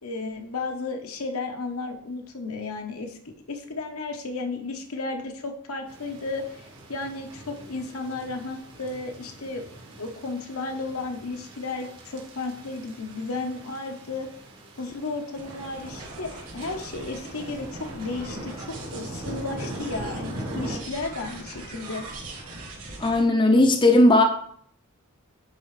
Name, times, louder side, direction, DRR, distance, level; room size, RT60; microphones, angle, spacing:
voice 1, 0.0-6.6 6.9-9.6 10.0-14.3 14.8-22.1, left 3 dB, 85° left, 3 dB, 1.0 m, -33 dB
sound 1, 5.9-20.8, right 1 dB, 60° right, 1.8 m, -42 dB
sound 2, 15.4-23.3, right 2 dB, 80° right, 2.9 m, -40 dB
voice 2, 23.0-24.2, left 1 dB, 20° left, 4 dB, 0.6 m, -17 dB
9.7 x 4.2 x 3.2 m, 0.63 s
head